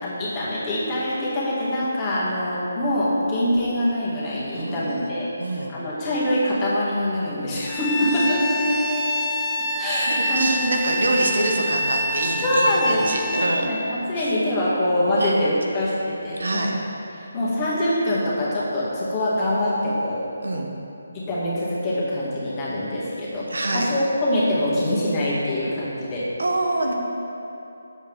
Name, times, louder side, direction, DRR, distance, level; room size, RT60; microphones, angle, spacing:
voice 1, 0.0-8.4 9.8-10.5 12.4-13.1 13.5-16.7 17.2-20.2 21.1-26.2, left 1 dB, 20° left, -8 dB, 2.0 m, -24 dB
voice 2, 4.5-5.1 5.4-5.7 8.0-9.3 10.1-13.7 14.1-14.3 15.2-15.5 16.4-16.7 20.4-20.7 23.5-23.9 26.4-26.9, right 1 dB, 65° right, 1 dB, 1.0 m, -26 dB
Bowed string instrument, 7.6-13.5, equal, ahead, 0.7 m, -26 dB
8.9 x 7.3 x 3.6 m, 2.9 s
figure-of-eight pair, 150°, 0 cm